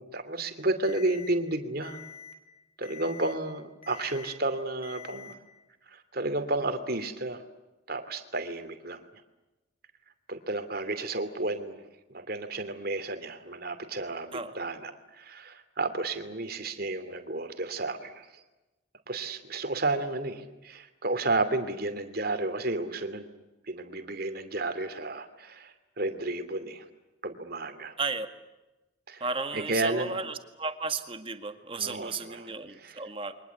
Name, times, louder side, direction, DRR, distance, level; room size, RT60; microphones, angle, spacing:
voice 1, 0.0-2.0 2.8-5.4 5.9-7.4 7.9-9.0 10.3-11.8 12.1-18.3 19.1-23.3 23.7-26.8 27.2-28.0 29.1-29.3 29.5-30.2 31.7-32.5 32.8-33.0, right 2 dB, 50° right, 9 dB, 2.7 m, -32 dB
Alarm, 0.8-1.3 1.8-2.3 2.8-3.3 3.8-4.3 4.8-5.3, left 8 dB, 30° left, 4.1 m, -46 dB
voice 2, 29.2-33.3, right 4 dB, 25° right, 8 dB, 1.9 m, -34 dB
29.5 x 23.5 x 8.3 m, 1.0 s
head